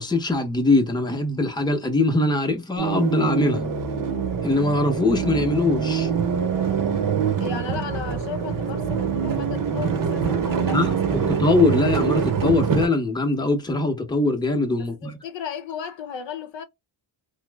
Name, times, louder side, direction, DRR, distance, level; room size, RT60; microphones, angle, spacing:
voice 1, 0.0-3.7 4.4-6.1 10.7-15.2, left 2 dB, 10° left, 0.8 m, -22 dB
sound 1, 2.8-12.9, right 6 dB, 45° right, 0.9 m, -24 dB
voice 2, 7.4-11.0 14.8-16.6, left 7 dB, 65° left, 0.7 m, -35 dB
3.0 x 2.0 x 3.4 m
cardioid pair, 90°, 47 cm